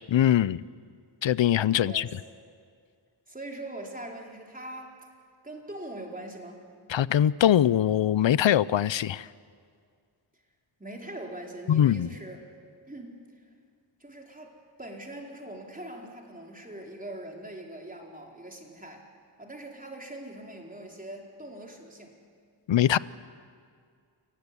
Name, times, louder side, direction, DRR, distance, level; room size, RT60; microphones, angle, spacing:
voice 1, 0.1-0.6 1.2-2.1 6.9-9.3 11.7-12.1 22.7-23.0, left 11 dB, 70° left, 19 dB, 0.6 m, -22 dB
voice 2, 1.8-2.1 3.3-5.0 5.4-6.6 10.8-12.4 12.9-13.2 14.0-19.1 19.4-22.1, right 1 dB, 15° right, 0 dB, 4.2 m, -42 dB
28.5 x 15.5 x 9.9 m, 2.1 s
wide cardioid pair, 65°, 48 cm